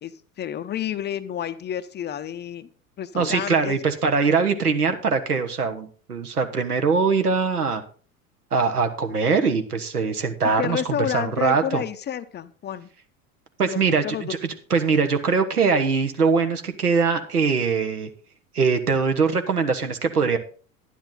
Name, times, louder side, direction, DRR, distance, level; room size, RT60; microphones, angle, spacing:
voice 1, 0.0-2.7 3.0-3.8 10.6-12.9 13.6-14.3, left 10 dB, 25° left, 12 dB, 0.6 m, -30 dB
voice 2, 3.1-7.8 8.5-11.8 13.6-18.1 18.5-20.4, right 5 dB, 85° right, 7 dB, 1.3 m, -22 dB
11.0 x 10.0 x 3.9 m, 0.41 s
figure-of-eight pair, 75°, 45 cm